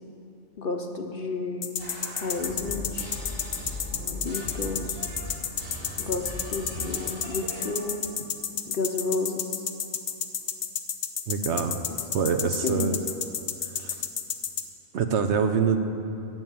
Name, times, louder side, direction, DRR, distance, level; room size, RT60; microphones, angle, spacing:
voice 1, 0.6-1.8 2.2-3.1 4.1-5.1 6.0-8.0 8.7-9.6 11.9-12.0 12.6-13.0, left 3 dB, 50° left, 4 dB, 0.8 m, -31 dB
sound 1, 1.6-14.6, left 8 dB, 65° left, 1.1 m, -30 dB
sound 2, 1.8-7.7, left 1 dB, 45° right, 2.8 m, -38 dB
voice 2, 11.3-11.8 12.1-13.0 13.8-14.0 14.9-15.8, right 6 dB, 65° right, 7 dB, 0.9 m, -25 dB
12.0 x 7.3 x 8.9 m, 2.7 s
omnidirectional pair, 1.4 m